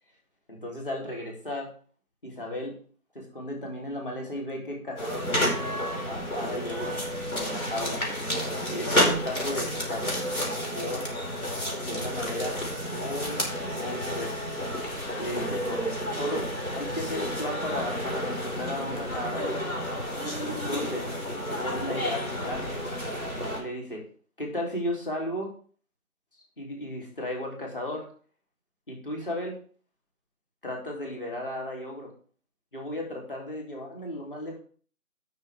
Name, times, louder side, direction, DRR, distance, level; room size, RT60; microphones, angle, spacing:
voice 1, 0.5-1.7 2.2-2.7 3.1-5.8 6.1-7.0 7.3-8.0 8.7-11.1 11.8-13.4 13.7-14.3 15.2-16.5 16.7-19.8 20.5-21.1 21.5-22.7 23.6-24.0 24.4-25.5 26.6-28.1 28.9-29.6 30.6-32.1 32.7-34.6, left 1 dB, 35° left, 0 dB, 3.4 m, -35 dB
sound 1, 5.0-23.6, equal, 65° left, 4.7 m, -30 dB
18.0 x 6.4 x 3.5 m, 0.43 s
figure-of-eight pair, 170°, 44 cm